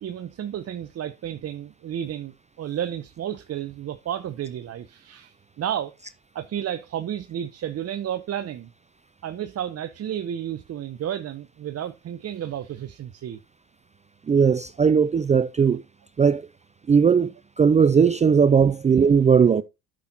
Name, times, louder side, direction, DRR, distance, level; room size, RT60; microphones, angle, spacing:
voice 1, 0.0-5.9 6.3-8.7 9.2-13.4, right 10 dB, 40° right, 0.7 m, -32 dB
voice 2, 14.3-15.8 16.2-16.5 16.9-17.3 17.6-19.6, right 6 dB, 20° right, 0.4 m, -18 dB
8.5 x 6.1 x 4.0 m
supercardioid pair, 75°, 38 cm